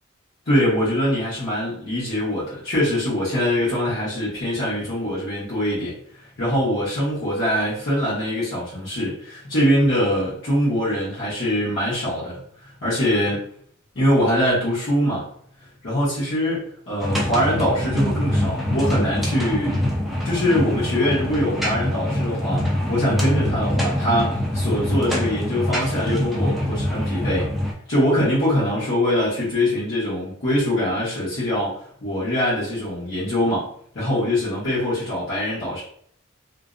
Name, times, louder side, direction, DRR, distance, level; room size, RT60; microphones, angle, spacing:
voice 1, 0.5-6.0 6.4-12.4 12.8-13.4 13.9-15.3 15.8-19.8 20.2-27.5 27.9-33.7 33.9-35.8, equal, 65° left, -11 dB, 1.0 m, -23 dB
sound 1, 17.0-27.7, left 1 dB, ahead, 0.3 m, -24 dB
2.5 x 2.1 x 2.5 m, 0.62 s
head